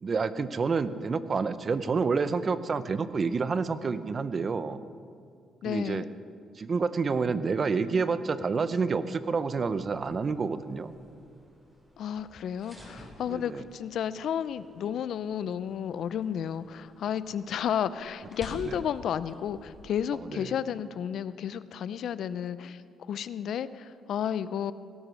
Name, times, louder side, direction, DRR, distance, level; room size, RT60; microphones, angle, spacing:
voice 1, 0.0-4.8 5.6-6.1 6.6-10.9 13.3-13.6 18.6-18.7 20.3-20.5, right 4 dB, 40° right, 14 dB, 0.7 m, -28 dB
voice 2, 5.6-6.1 12.0-24.7, left 9 dB, 70° left, 16 dB, 0.5 m, -32 dB
sound 1, 9.6-20.1, equal, 10° right, 4.6 m, -52 dB
17.5 x 11.0 x 6.3 m, 2.4 s
cardioid pair, 90°, 0 cm